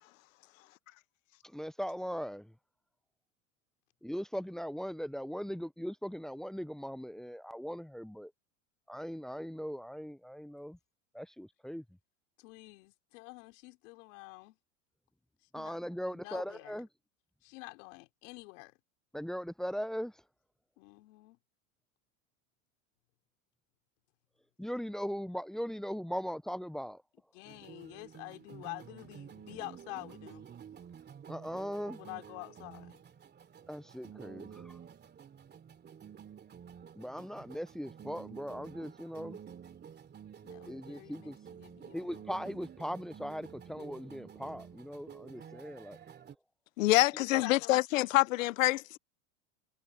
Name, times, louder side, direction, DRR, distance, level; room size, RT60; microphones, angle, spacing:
voice 1, 1.5-2.5 4.0-8.3 8.9-10.8 11.1-11.8 15.5-16.9 19.1-20.1 24.6-27.0 31.3-32.0 33.7-34.8 37.0-39.4 40.7-41.4 41.9-46.0 47.3-47.4, equal, ahead, 0.5 m, -39 dB
voice 2, 12.4-14.6 15.4-15.8 16.2-16.9 17.4-18.7 20.8-21.4 27.3-30.4 32.0-33.0 40.4-42.3 47.4-47.8, left 25 dB, 70° left, 4.6 m, -47 dB
sound 1, 27.5-46.4, right 8 dB, 25° right, 2.9 m, -51 dB
voice 3, 46.8-49.0, left 18 dB, 85° left, 0.7 m, -26 dB
supercardioid pair, 110°, 39 cm